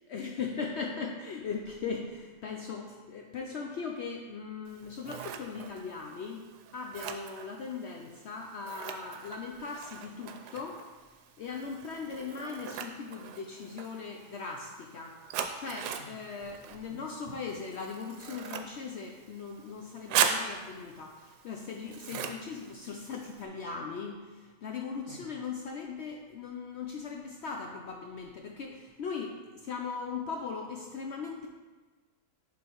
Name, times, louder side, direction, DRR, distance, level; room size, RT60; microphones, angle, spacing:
voice 1, 0.1-6.4 6.7-10.8 11.4-31.5, left 5 dB, 70° left, 1 dB, 0.6 m, -39 dB
Scissors, 4.7-23.4, right 7 dB, 85° right, 1.1 m, -39 dB
11.0 x 3.7 x 3.0 m, 1.3 s
omnidirectional pair, 1.7 m